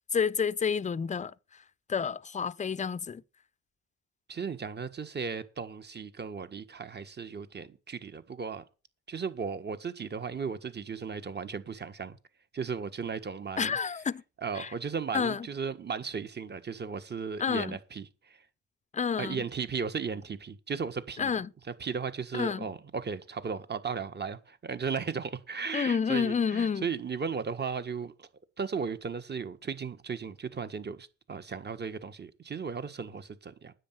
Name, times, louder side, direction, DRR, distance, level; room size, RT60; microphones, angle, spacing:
voice 1, 0.1-1.6 1.9-3.2 13.6-14.2 14.5-14.7 15.1-15.5 17.4-17.8 18.9-19.4 21.2-21.5 22.3-22.7 25.7-26.9, left 6 dB, 25° left, 0.6 m, -29 dB
voice 2, 4.3-8.6 9.1-12.2 12.5-13.8 14.4-18.4 19.2-21.3 21.8-28.3 28.6-33.7, right 5 dB, 35° right, 1.5 m, -36 dB
10.0 x 8.0 x 7.6 m
cardioid pair, 90°, 30 cm